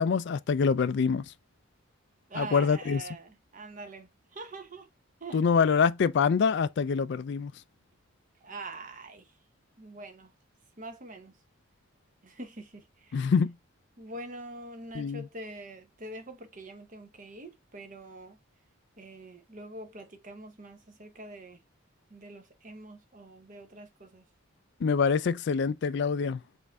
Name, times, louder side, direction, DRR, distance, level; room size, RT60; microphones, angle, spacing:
voice 1, 0.0-1.3 2.4-3.0 5.3-7.5 13.1-13.5 14.9-15.3 24.8-26.4, left 5 dB, 55° left, 0.3 m, -25 dB
voice 2, 2.3-4.9 5.2-5.8 8.4-9.3 9.8-10.3 10.8-11.3 12.2-13.3 14.0-18.4 19.0-21.6 22.1-24.2, right 2 dB, 35° right, 0.8 m, -44 dB
5.4 x 2.6 x 3.4 m
head